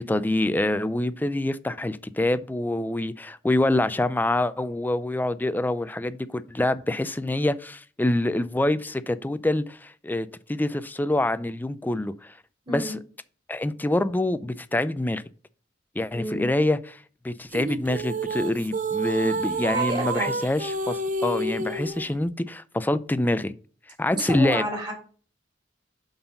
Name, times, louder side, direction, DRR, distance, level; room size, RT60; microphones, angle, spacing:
voice 1, 0.0-12.3 12.7-13.0 13.5-15.2 16.0-17.0 17.2-23.5 24.0-24.6, left 1 dB, 10° left, 0.4 m, -26 dB
voice 2, 12.7-13.0 16.1-16.5 19.2-19.3 19.6-20.4 24.1-24.9, equal, 25° right, 3.4 m, -30 dB
sound 1, 17.5-22.1, right 3 dB, 45° right, 0.7 m, -29 dB
7.7 x 4.0 x 5.8 m
head